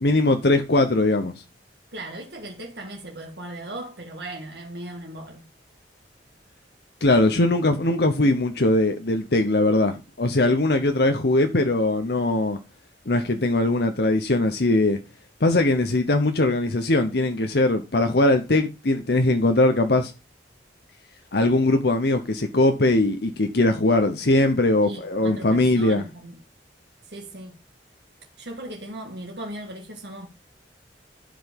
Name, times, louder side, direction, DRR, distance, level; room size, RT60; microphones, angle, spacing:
voice 1, 0.0-1.3 7.0-12.6 13.1-15.0 15.4-20.1 21.3-26.0, left 2 dB, 65° left, 0.9 m, -21 dB
voice 2, 1.9-5.4 24.8-26.4 27.1-27.6 28.4-30.3, right 1 dB, 70° right, 1.9 m, -37 dB
11.5 x 5.2 x 5.3 m
head